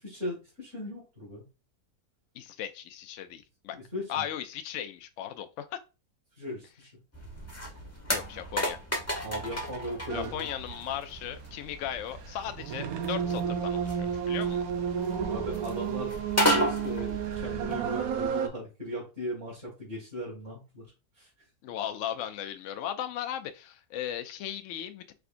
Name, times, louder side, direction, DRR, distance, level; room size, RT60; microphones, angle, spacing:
voice 1, 0.0-1.4 3.7-4.2 6.4-6.9 9.2-10.5 15.3-16.1 16.4-20.9 21.2-21.3, equal, 40° right, 2.4 m, -37 dB
voice 2, 2.3-3.8 4.1-5.8 8.1-8.8 10.1-14.6 21.6-25.1, left 10 dB, 65° left, 0.8 m, -37 dB
sound 1, 7.1-18.3, equal, 10° left, 0.9 m, -34 dB
sound 2, 10.1-10.3 10.6-18.5, right 8 dB, 70° right, 1.1 m, -32 dB
4.8 x 3.4 x 2.5 m
omnidirectional pair, 1.6 m